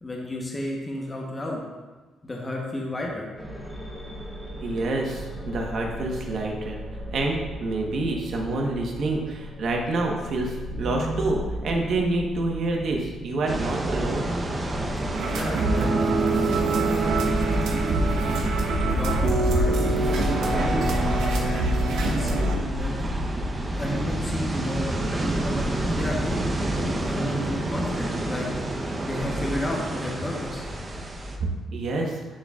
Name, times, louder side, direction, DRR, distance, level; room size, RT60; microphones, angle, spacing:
voice 1, 0.0-1.6 2.2-3.3 15.3-18.5 18.9-19.8 20.5-22.9 23.8-26.4 26.7-28.5 29.0-30.6, left 1 dB, 25° left, -2 dB, 1.0 m, -32 dB
sound 1, 3.4-21.7, equal, 5° left, 1.6 m, -37 dB
voice 2, 4.6-6.8 7.1-14.3 31.7-32.2, right 2 dB, 60° right, 0 dB, 1.2 m, -27 dB
sound 2, 13.5-31.4, equal, 25° right, 0.8 m, -28 dB
sound 3, 15.1-22.6, right 3 dB, 85° right, 0.9 m, -25 dB
10.0 x 4.0 x 2.4 m, 1.3 s
cardioid pair, 90°, 0 cm